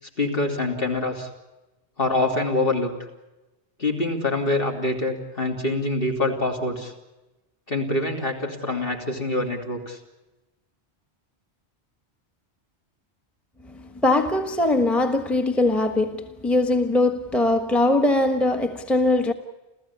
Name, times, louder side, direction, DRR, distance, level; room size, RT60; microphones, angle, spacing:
voice 1, 0.2-1.3 2.0-2.9 3.8-6.9 7.7-10.0, left 2 dB, 55° left, 3.3 m, -25 dB
voice 2, 13.7-19.3, left 2 dB, ahead, 1.2 m, -21 dB
29.5 x 14.5 x 8.6 m
omnidirectional pair, 1.1 m